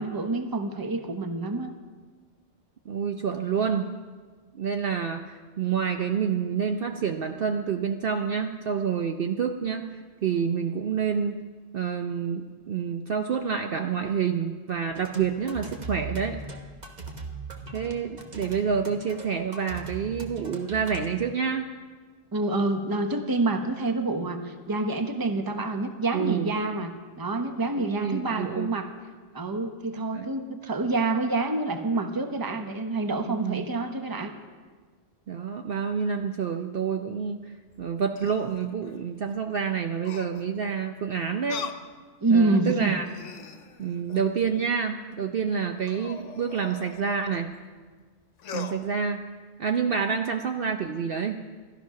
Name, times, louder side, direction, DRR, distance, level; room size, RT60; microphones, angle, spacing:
voice 1, 0.0-1.7 22.3-28.9 29.3-34.3 42.2-43.0, right 2 dB, 20° right, 6 dB, 0.9 m, -27 dB
voice 2, 2.9-3.9 4.5-11.4 11.7-16.4 17.7-21.6 26.1-26.5 27.8-28.7 30.1-30.3 33.1-33.6 35.3-41.7 42.3-43.0 43.8-47.5 48.5-49.2 49.6-51.4, right 6 dB, 55° right, 5 dB, 0.8 m, -28 dB
sound 1, 14.9-21.1, right 3 dB, 40° right, 1.3 m, -39 dB
sound 2, 37.7-39.0 40.0-40.6 41.5-41.9 42.5-42.6 43.0-44.4 45.8-47.4 48.4-48.8, left 7 dB, 80° left, 1.2 m, -41 dB
14.0 x 12.0 x 5.7 m, 1.5 s
omnidirectional pair, 1.2 m